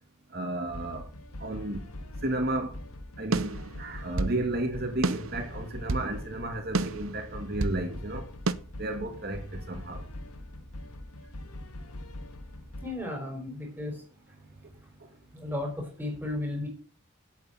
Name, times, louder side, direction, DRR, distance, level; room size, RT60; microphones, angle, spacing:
voice 1, 0.3-1.1 1.4-1.8 2.2-2.7 3.2-8.3 8.8-10.0, right 1 dB, 45° right, 2.3 m, -33 dB
sound 1, 0.7-12.9, left 1 dB, 85° left, 1.6 m, -42 dB
sound 2, 3.3-4.4 5.0-6.1 6.7-7.8 8.5-8.6, right 3 dB, 70° right, 0.8 m, -30 dB
voice 2, 12.8-14.0 15.3-16.7, left 2 dB, 10° right, 4.3 m, -34 dB
8.6 x 8.1 x 8.1 m
head